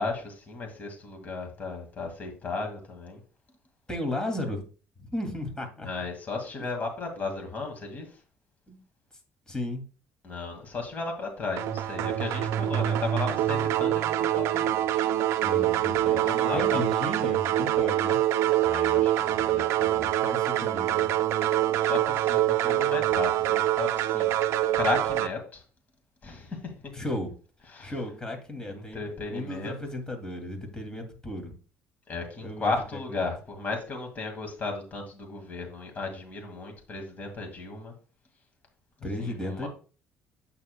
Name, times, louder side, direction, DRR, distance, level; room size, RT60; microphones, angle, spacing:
voice 1, 0.0-3.2 5.8-8.1 10.2-15.1 16.1-16.8 18.6-20.1 21.7-24.3 24.7-25.6 26.2-26.9 27.7-27.9 28.7-29.7 32.1-37.9 39.2-39.7, left 3 dB, 35° left, 3 dB, 2.0 m, -35 dB
voice 2, 3.9-4.6 5.0-5.9 8.7-8.8 9.5-9.8 15.4-16.2 16.5-18.2 20.0-21.1 26.9-27.3 27.8-31.5 32.4-32.7 33.1-33.2 39.0-39.7, left 1 dB, 15° left, 4 dB, 2.3 m, -34 dB
sound 1, 11.6-25.3, right 13 dB, 75° right, 0.5 m, -25 dB
8.4 x 6.9 x 2.2 m, 0.36 s
cardioid pair, 95°, 5 cm